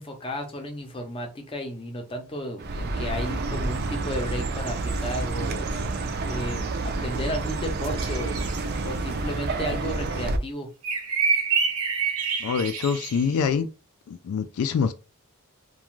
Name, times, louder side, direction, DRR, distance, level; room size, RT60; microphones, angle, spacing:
voice 1, 0.0-5.7 6.2-10.7, equal, 25° left, 0.6 m, -34 dB
Chirp tweet, 2.6-10.4, right 3 dB, 45° right, 0.4 m, -29 dB
sound 1, 8.0-8.6 10.8-13.3, right 5 dB, 80° right, 0.7 m, -27 dB
voice 2, 12.4-13.7 14.1-14.9, left 6 dB, 75° left, 0.3 m, -25 dB
2.4 x 2.2 x 3.0 m
head